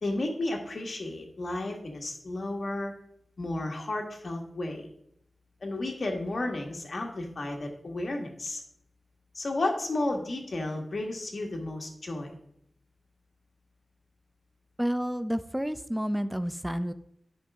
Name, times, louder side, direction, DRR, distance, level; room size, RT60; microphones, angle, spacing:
voice 1, 0.0-2.9 3.4-4.9 5.6-8.6 9.3-12.3, left 2 dB, 60° left, 2 dB, 1.6 m, -32 dB
voice 2, 14.8-16.9, equal, 5° right, 12 dB, 0.5 m, -30 dB
10.5 x 5.4 x 3.6 m, 0.73 s
wide cardioid pair, 85°, 0 cm